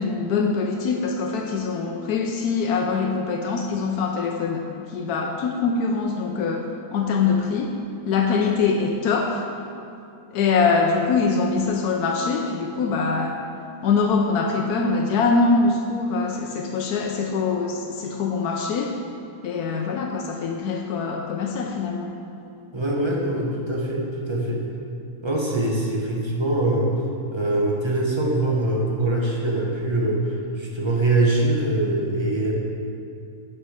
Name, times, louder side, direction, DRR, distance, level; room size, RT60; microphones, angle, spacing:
voice 1, 0.0-4.6 4.9-7.7 8.1-9.4 10.3-13.4 13.8-19.0 19.4-22.1, left 4 dB, 90° left, 1 dB, 1.2 m, -23 dB
voice 2, 22.7-24.6 25.2-26.9 27.3-30.2 30.6-32.5, right 2 dB, 20° right, -2 dB, 1.2 m, -23 dB
10.5 x 6.1 x 4.8 m, 2.5 s
omnidirectional pair, 1.6 m